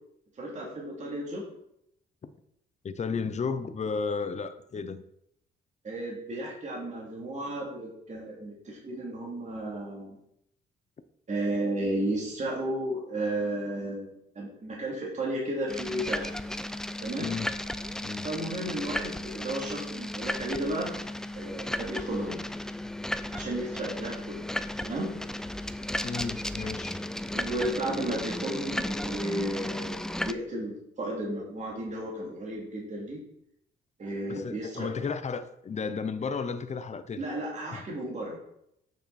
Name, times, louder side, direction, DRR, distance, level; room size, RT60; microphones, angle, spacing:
voice 1, 0.4-1.5 5.8-10.2 11.3-16.3 17.0-17.3 18.2-20.9 21.3-22.4 23.3-24.4 24.8-25.1 27.3-33.2 34.0-34.9 37.2-38.4, right 1 dB, 35° right, 3.0 m, -33 dB
voice 2, 2.8-5.0 17.2-17.6 18.0-18.3 26.0-27.0 34.3-37.3 37.7-37.9, left 5 dB, 35° left, 0.8 m, -33 dB
sound 1, 15.7-30.3, left 1 dB, 5° left, 0.4 m, -35 dB
8.6 x 6.6 x 4.3 m
cardioid pair, 90°, 20 cm